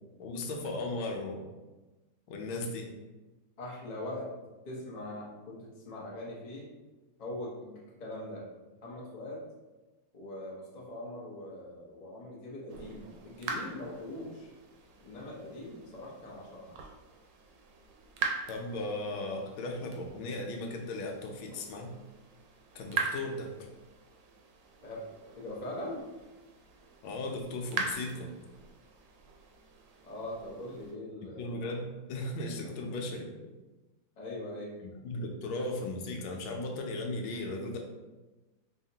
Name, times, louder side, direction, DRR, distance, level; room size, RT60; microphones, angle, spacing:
voice 1, 0.2-1.5 2.3-2.9 18.5-21.9 22.7-23.5 27.0-28.3 31.4-33.3 35.0-37.8, left 2 dB, 80° left, 2 dB, 1.4 m, -36 dB
voice 2, 3.6-4.3 4.7-6.7 7.2-8.5 8.8-9.4 10.1-14.5 15.0-16.9 24.8-25.0 25.4-26.0 30.0-31.6 32.6-32.7 34.2-34.7, left 1 dB, 60° left, -4 dB, 0.4 m, -41 dB
sound 1, 12.7-30.9, right 5 dB, 75° right, 1.1 m, -42 dB
4.8 x 2.8 x 2.7 m, 1.1 s
omnidirectional pair, 2.3 m